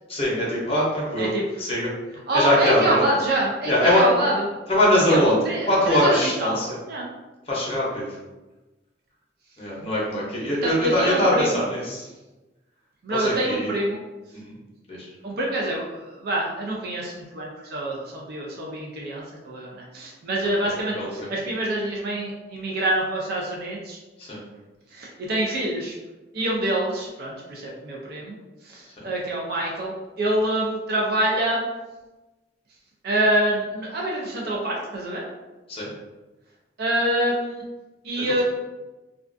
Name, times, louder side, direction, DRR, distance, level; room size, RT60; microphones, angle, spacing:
voice 1, 0.1-1.9 2.3-3.0 3.6-4.1 4.7-5.4 5.7-6.7 7.5-8.2 9.6-12.1 13.1-13.7 14.3-14.6 14.9-15.1 20.6-21.3 24.2-24.4 29.0-29.1 35.7-35.9, left 1 dB, 35° left, -5 dB, 0.7 m, -22 dB
voice 2, 2.3-4.4 5.1-5.2 5.5-6.6 6.9-7.1 10.6-11.5 13.0-14.0 15.2-24.0 24.9-25.9 26.3-28.4 28.6-31.7 33.0-35.2 36.8-37.6 38.0-38.4, right 1 dB, 60° right, -3 dB, 0.4 m, -26 dB
2.3 x 2.3 x 2.5 m, 1.1 s
head